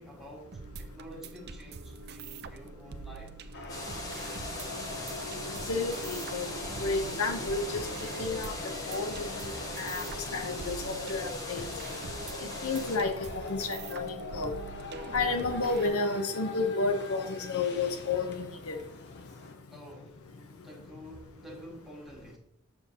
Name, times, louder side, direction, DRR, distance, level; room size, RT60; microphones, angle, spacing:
voice 1, 0.0-3.5 19.7-22.4, equal, ahead, 1.8 m, -49 dB
sound 1, 0.5-15.9, right 4 dB, 50° right, 0.5 m, -45 dB
sound 2, 3.5-19.5, left 3 dB, 55° left, 0.9 m, -42 dB
sound 3, 3.7-13.0, left 1 dB, 15° left, 1.1 m, -40 dB
voice 2, 5.7-6.5 6.8-8.5 8.9-10.1 10.3-11.7 12.4-14.5 15.1-18.8, left 3 dB, 85° left, 0.8 m, -31 dB
7.1 x 7.0 x 2.8 m
head